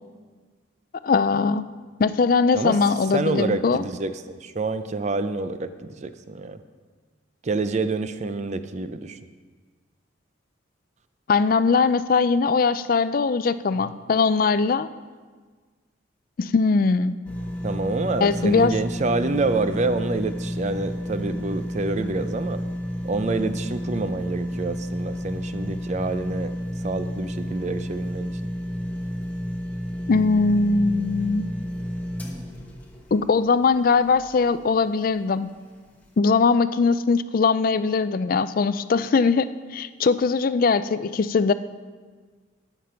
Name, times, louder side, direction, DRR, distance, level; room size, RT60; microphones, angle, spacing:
voice 1, 1.0-1.6 2.0-3.8 11.3-14.9 16.4-17.1 18.2-18.7 30.1-31.4 33.1-35.5 36.2-41.5, left 4 dB, 45° left, 14 dB, 0.4 m, -21 dB
voice 2, 3.1-6.6 7.4-9.2 17.6-22.6 23.0-26.5 26.8-28.4, right 3 dB, 35° right, 11 dB, 0.5 m, -27 dB
sound 1, 17.2-34.4 34.9-35.0, equal, 10° left, 1.2 m, -31 dB
13.5 x 6.0 x 5.7 m, 1.5 s
head